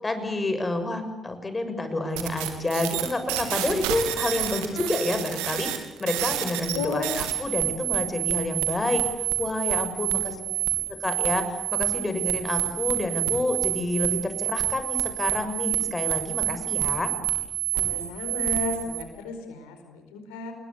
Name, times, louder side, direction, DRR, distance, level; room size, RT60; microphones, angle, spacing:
voice 1, 0.0-9.0 9.4-10.4 10.9-17.1, left 2 dB, 25° left, 9 dB, 6.7 m, -29 dB
sound 1, 2.2-19.0, right 15 dB, 75° right, 3.1 m, -28 dB
voice 2, 6.7-7.1 10.0-10.6 17.7-20.5, left 4 dB, 80° left, 7 dB, 4.7 m, -34 dB
28.5 x 21.5 x 8.4 m, 0.97 s
hypercardioid pair, 45°, 0 cm